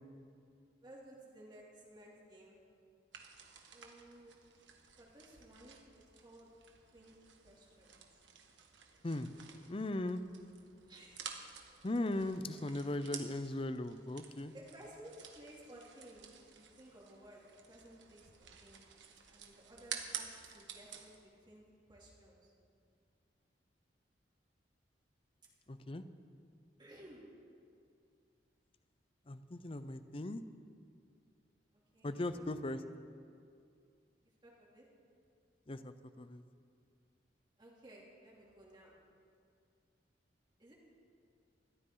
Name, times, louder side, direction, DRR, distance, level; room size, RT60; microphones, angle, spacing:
voice 1, 0.8-2.6 3.7-4.4 5.0-5.8 6.2-6.5 6.9-7.1 7.4-8.2 10.9-11.4 12.8-13.3 14.5-17.4 17.7-18.8 19.3-21.1 21.4-22.5 26.8-27.3 31.9-32.8 34.4-34.8 37.6-39.0 40.6-40.7, right 1 dB, 25° right, -4 dB, 2.9 m, -57 dB
sound 1, 3.1-21.2, right 7 dB, 90° right, 1.5 m, -52 dB
voice 2, 9.7-10.2 11.8-14.5 25.7-26.0 29.3-30.4 32.0-32.8 35.7-36.4, left 1 dB, 30° left, 12 dB, 0.6 m, -38 dB
21.5 x 14.0 x 3.9 m, 2.4 s
head